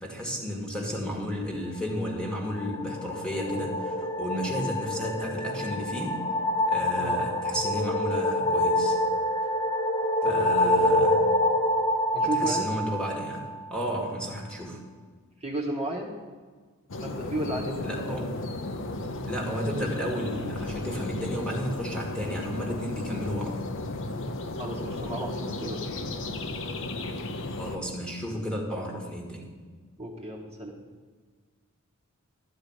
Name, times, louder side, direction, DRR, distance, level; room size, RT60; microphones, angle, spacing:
voice 1, 0.0-6.2 6.7-9.0 10.2-11.2 12.2-13.4 13.7-14.8 17.8-18.3 19.3-23.6 27.5-29.5, equal, 5° left, -1 dB, 1.7 m, -33 dB
sound 1, 2.2-13.7, left 1 dB, 20° left, 0.8 m, -26 dB
voice 2, 10.2-11.0 12.1-12.7 15.4-16.1 17.0-18.3 24.6-25.8 30.0-30.8, right 1 dB, 30° right, -2 dB, 1.4 m, -34 dB
sound 2, 16.9-27.8, left 2 dB, 60° left, 0.8 m, -34 dB
12.5 x 4.9 x 8.7 m, 1.5 s
head